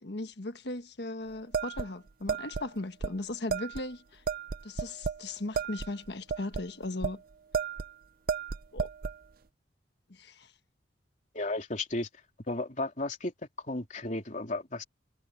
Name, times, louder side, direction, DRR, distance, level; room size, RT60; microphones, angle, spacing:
voice 1, 0.0-4.2 4.6-7.2 8.7-8.9 10.1-10.5, left 2 dB, 60° left, 1.4 m, -38 dB
sound 1, 1.5-2.7 3.0-3.1 3.5-3.8 4.3-5.2 5.5-7.2 7.5-7.9 8.3-9.2, right 5 dB, 50° right, 0.5 m, -33 dB
voice 2, 11.3-12.1 12.5-13.3 13.6-14.8, left 2 dB, 40° left, 3.6 m, -34 dB
head